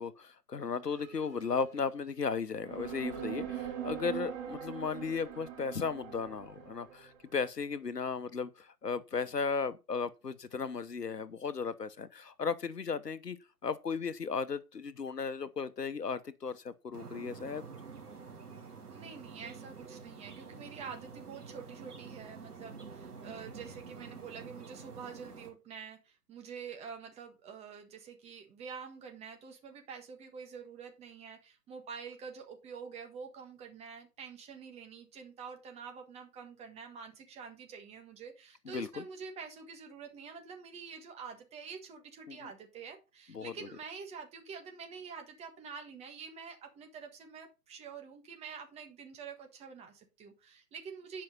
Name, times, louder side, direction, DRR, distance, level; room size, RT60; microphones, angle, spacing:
voice 1, 0.0-13.4 13.6-17.6 38.7-39.0 42.3-42.5 43.3-43.5, left 5 dB, 90° left, 1.1 m, -35 dB
sound 1, 0.9-2.0 2.6-7.3, right 10 dB, 35° right, 3.6 m, -42 dB
sound 2, 16.9-25.5, right 5 dB, 75° right, 2.8 m, -48 dB
voice 2, 18.9-51.2, right 6 dB, 15° right, 1.5 m, -47 dB
10.5 x 5.7 x 5.4 m
figure-of-eight pair, 135°, 47 cm